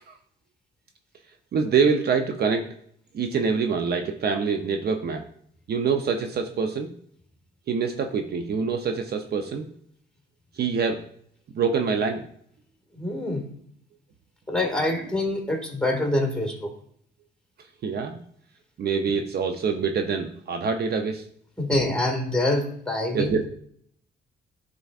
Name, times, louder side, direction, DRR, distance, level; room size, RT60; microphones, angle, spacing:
voice 1, 1.5-2.7 3.1-5.2 5.7-6.9 7.7-9.7 10.6-11.0 11.5-12.2 17.8-18.2 18.8-21.2 23.1-23.5, right 5 dB, 55° right, 5 dB, 0.6 m, -25 dB
voice 2, 12.9-13.5 14.5-16.7 21.6-23.3, left 1 dB, 5° left, 1 dB, 1.9 m, -25 dB
11.0 x 3.8 x 2.4 m, 0.64 s
cardioid pair, 90°, 20 cm